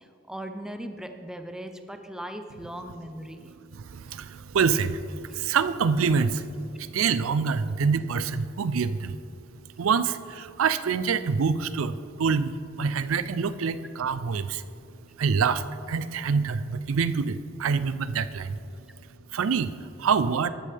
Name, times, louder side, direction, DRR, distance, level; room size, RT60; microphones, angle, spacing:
voice 1, 0.0-3.5, equal, 5° right, 6 dB, 0.6 m, -38 dB
voice 2, 3.7-6.5 6.8-9.2 9.8-14.6 15.2-18.6 19.3-20.5, right 5 dB, 75° right, 14 dB, 0.4 m, -26 dB
13.0 x 9.9 x 3.4 m, 2.6 s
head